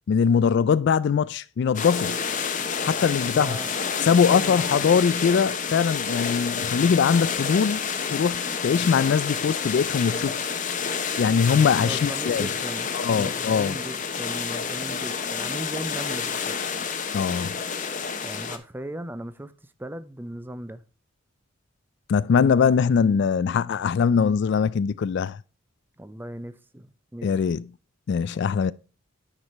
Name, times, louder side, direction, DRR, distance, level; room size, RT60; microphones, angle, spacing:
voice 1, 0.1-2.2 2.8-3.6 4.0-7.8 8.1-10.4 11.2-12.5 12.9-13.8 17.1-17.6 22.1-25.4 27.2-27.7 28.1-28.7, left 6 dB, 55° left, 0.3 m, -22 dB
sound 1, 1.7-18.6, left 6 dB, 40° left, 0.8 m, -29 dB
voice 2, 3.3-3.8 4.3-5.1 11.8-16.6 18.2-19.5 19.8-20.8 26.0-27.3, right 1 dB, 10° right, 0.5 m, -37 dB
9.7 x 4.9 x 4.1 m
head